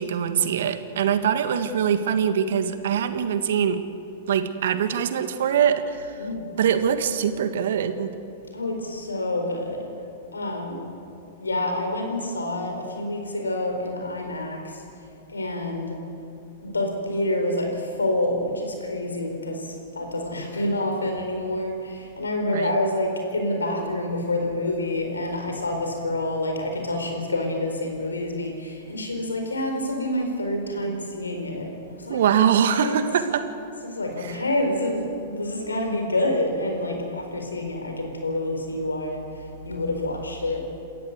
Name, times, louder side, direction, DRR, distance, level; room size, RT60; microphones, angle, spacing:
voice 1, 0.0-3.8 4.3-6.1 6.6-8.1 22.5-22.7 32.1-33.3, right 8 dB, 65° right, 9 dB, 1.7 m, -23 dB
voice 2, 8.5-9.9 10.3-10.9 11.4-14.8 15.3-16.0 16.6-32.2 32.7-33.0 33.8-40.6, left 1 dB, 90° left, 3 dB, 4.5 m, -28 dB
28.5 x 13.5 x 8.2 m, 2.7 s
hypercardioid pair, 105°, 0 cm